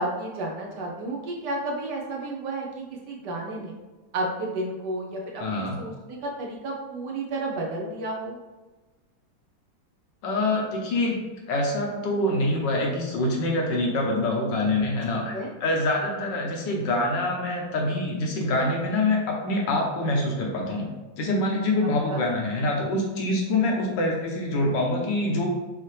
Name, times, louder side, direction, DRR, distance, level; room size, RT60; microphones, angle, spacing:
voice 1, 0.0-3.8 4.1-8.4 15.3-15.5 21.8-22.3, right 2 dB, 65° right, -1 dB, 1.2 m, -32 dB
voice 2, 5.4-5.8 10.2-11.2 11.5-15.4 15.6-20.9 21.2-25.5, left 2 dB, 70° left, 0 dB, 1.4 m, -25 dB
5.6 x 2.8 x 3.2 m, 1.2 s
omnidirectional pair, 2.1 m